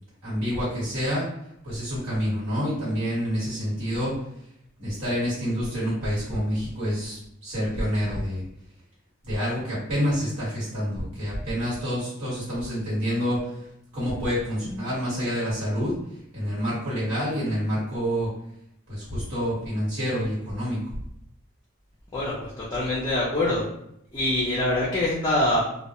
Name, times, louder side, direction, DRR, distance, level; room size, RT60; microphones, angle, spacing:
voice 1, 0.2-1.3 1.6-4.1 4.8-8.4 9.2-13.7 13.9-16.0 16.3-18.3 18.9-21.0, equal, 70° right, -9 dB, 1.3 m, -27 dB
voice 2, 22.1-23.6 24.1-25.6, left 1 dB, 20° left, -7 dB, 0.4 m, -24 dB
2.2 x 2.1 x 2.8 m, 0.76 s
head